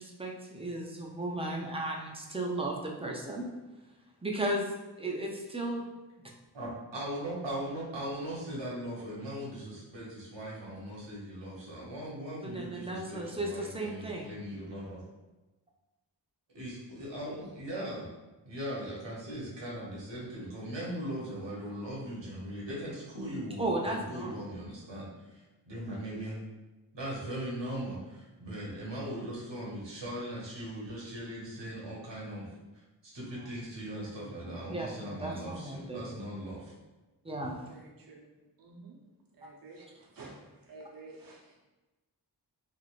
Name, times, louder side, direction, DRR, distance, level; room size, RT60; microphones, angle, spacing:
voice 1, 0.0-3.5 4.2-4.7 5.0-5.9 12.4-14.3 23.6-24.4 33.3-33.5 34.2-36.1 37.2-37.6, right 1 dB, 15° right, 0 dB, 0.4 m, -35 dB
voice 2, 6.5-15.0 16.5-18.1 18.4-25.4 25.7-26.4 26.9-32.5 33.0-36.7, right 1 dB, 85° right, -5 dB, 1.1 m, -39 dB
voice 3, 37.6-39.0 39.3-41.5, right 3 dB, 55° right, -2 dB, 0.7 m, -51 dB
3.2 x 2.5 x 2.4 m, 1.1 s
wide cardioid pair, 105°, 42 cm